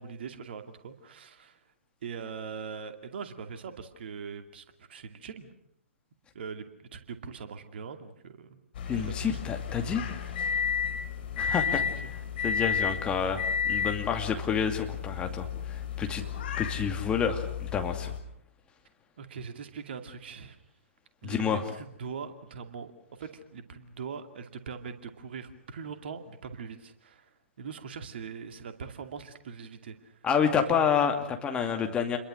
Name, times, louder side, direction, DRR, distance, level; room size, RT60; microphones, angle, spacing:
voice 1, 0.0-1.6 2.0-5.5 6.3-8.6 8.9-9.4 11.6-11.9 19.2-20.6 21.2-22.9 23.2-27.3 27.6-30.1 30.7-30.8, right 6 dB, 50° right, 7 dB, 2.4 m, -41 dB
sound 1, 8.7-18.2, left 7 dB, 45° left, 3.7 m, -32 dB
voice 2, 8.9-10.0 11.4-11.8 12.4-16.2 16.6-18.1 21.2-21.6 30.2-32.2, left 7 dB, 15° left, 4 dB, 2.4 m, -29 dB
28.5 x 22.0 x 6.5 m, 0.72 s
figure-of-eight pair, 120°, 7 cm